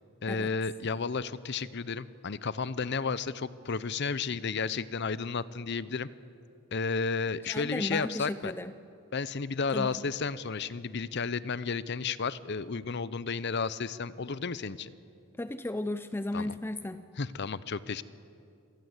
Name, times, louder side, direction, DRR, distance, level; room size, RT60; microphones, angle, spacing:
voice 1, 0.2-6.1 6.7-8.5 9.1-14.9 16.3-16.6 17.2-18.0, left 5 dB, 55° left, 17 dB, 0.7 m, -32 dB
voice 2, 7.4-8.7 9.7-10.0 15.4-17.0, left 1 dB, 10° left, 11 dB, 0.5 m, -35 dB
27.5 x 18.5 x 8.1 m, 2.5 s
head